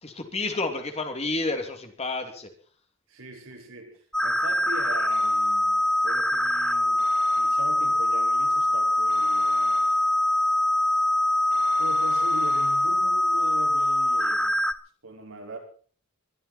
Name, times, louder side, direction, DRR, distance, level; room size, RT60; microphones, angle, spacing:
voice 1, 0.0-2.5, left 2 dB, 30° left, 2.8 m, -30 dB
voice 2, 3.1-7.1 7.3-9.8 11.8-14.6 15.0-15.6, right 1 dB, 85° right, 5.1 m, -41 dB
sound 1, 4.1-14.7, left 1 dB, 5° left, 0.8 m, -23 dB
sound 2, 5.1-5.8 7.0-7.9 9.1-10.3 11.5-13.2, left 4 dB, 60° left, 5.0 m, -46 dB
21.5 x 13.0 x 4.3 m
head